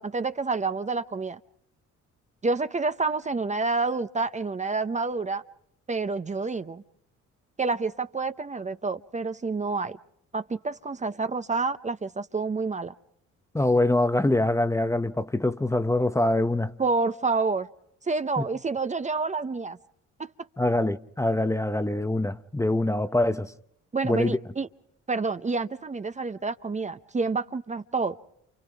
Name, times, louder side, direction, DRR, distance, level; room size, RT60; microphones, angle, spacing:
voice 1, 0.0-1.4 2.4-5.4 5.9-6.8 7.6-10.0 10.3-12.9 16.8-17.7 18.0-19.8 20.2-20.3 23.9-24.7 25.1-28.2, right 4 dB, 25° right, 0.7 m, -28 dB
voice 2, 13.5-16.7 18.4-18.5 20.6-23.5 24.0-24.4, left 2 dB, 10° left, 0.7 m, -24 dB
29.0 x 29.0 x 3.5 m
cardioid pair, 90°, 30 cm